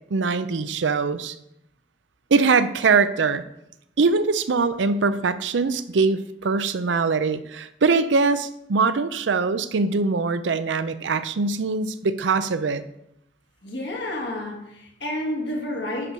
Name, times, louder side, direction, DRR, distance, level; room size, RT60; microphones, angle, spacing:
voice 1, 0.1-1.3 2.3-3.4 4.0-12.8, right 4 dB, 90° right, 12 dB, 0.5 m, -22 dB
voice 2, 13.6-16.1, left 1 dB, 65° left, -1 dB, 1.7 m, -30 dB
9.8 x 4.6 x 5.3 m, 0.80 s
head